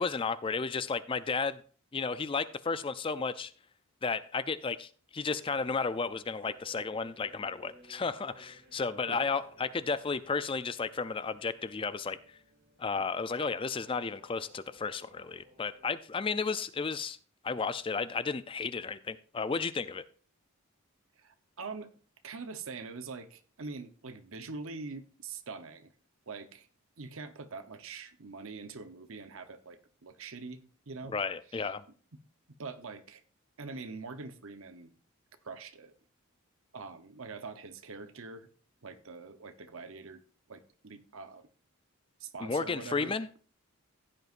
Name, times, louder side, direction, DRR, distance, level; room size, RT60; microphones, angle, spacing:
voice 1, 0.0-1.6 1.9-3.5 4.0-12.2 12.8-17.2 17.4-20.0 31.1-31.8 42.4-43.3, left 4 dB, 25° left, 0.4 m, -33 dB
sound 1, 5.4-16.0, right 1 dB, 40° right, 2.0 m, -59 dB
voice 2, 21.2-21.9 22.2-25.9 26.3-26.7 27.0-31.1 31.5-31.7 32.6-33.2 33.6-34.9 35.4-35.9 36.7-38.5 38.8-40.2 40.5-41.5 42.2-43.2, right 4 dB, 65° right, 0.9 m, -44 dB
15.5 x 8.0 x 2.5 m
head